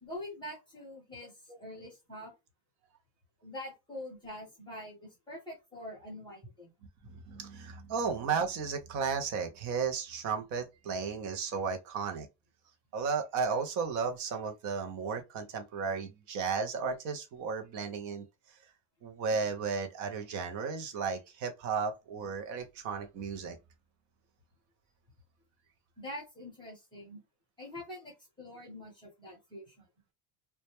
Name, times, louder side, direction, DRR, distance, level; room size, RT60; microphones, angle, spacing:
voice 1, 0.0-2.3 3.4-6.7 26.0-27.2 27.6-29.9, left 1 dB, 10° left, 0.7 m, -45 dB
voice 2, 7.1-12.3 12.9-18.6 19.0-23.6, right 5 dB, 40° right, 0.4 m, -34 dB
2.1 x 2.0 x 2.8 m
cardioid pair, 170°, 49 cm